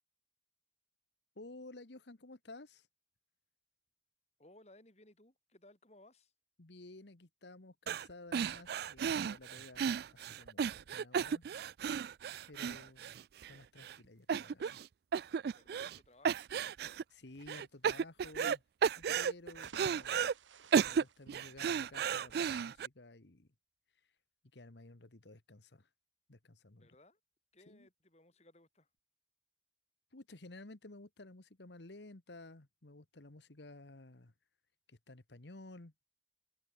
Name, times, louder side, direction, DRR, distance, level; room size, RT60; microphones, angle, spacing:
voice 1, 1.3-2.9 6.6-11.4 12.5-13.1 13.5-14.8 17.1-18.6 19.0-20.3 20.7-23.5 24.5-25.9 26.3-26.9 27.7-27.9 30.1-34.3 34.9-35.9, left 2 dB, 65° left, 1.4 m, -54 dB
voice 2, 4.4-6.3 15.5-16.4 26.8-27.2 27.5-28.9, left 1 dB, 35° left, 4.6 m, -62 dB
sound 1, 7.9-8.1 8.3-13.5 13.8-13.9 14.3-14.9 15.1-16.0 16.2-17.0 17.5-18.6 18.8-20.3 20.7-22.9, right 7 dB, 55° right, 0.3 m, -34 dB
sound 2, 19.4-22.0, right 5 dB, 85° right, 1.0 m, -55 dB
head